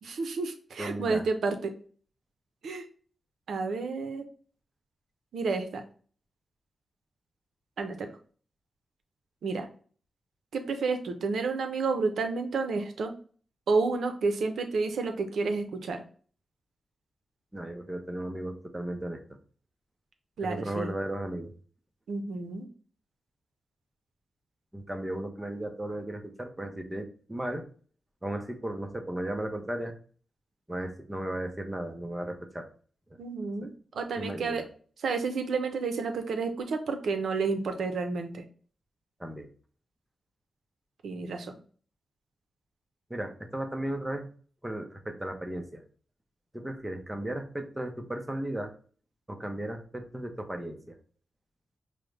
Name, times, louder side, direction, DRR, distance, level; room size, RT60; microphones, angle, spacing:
voice 1, 0.0-1.7 2.6-2.8 3.5-4.2 5.3-5.8 7.8-8.1 9.4-9.7 10.5-13.1 13.7-16.0 20.4-20.9 22.1-22.7 33.2-34.6 35.0-38.4 41.0-41.5, right 4 dB, 85° right, 7 dB, 0.5 m, -30 dB
voice 2, 0.8-1.2 17.5-19.2 20.4-21.5 24.7-27.7 28.2-29.9 30.7-32.7 33.1-33.2 33.6-33.7 34.2-34.7 39.2-39.5 43.1-44.3 44.6-45.8 46.5-48.7 49.3-51.0, right 1 dB, 10° right, 5 dB, 0.5 m, -35 dB
4.9 x 2.0 x 3.2 m, 0.43 s
wide cardioid pair, 115°, 0 cm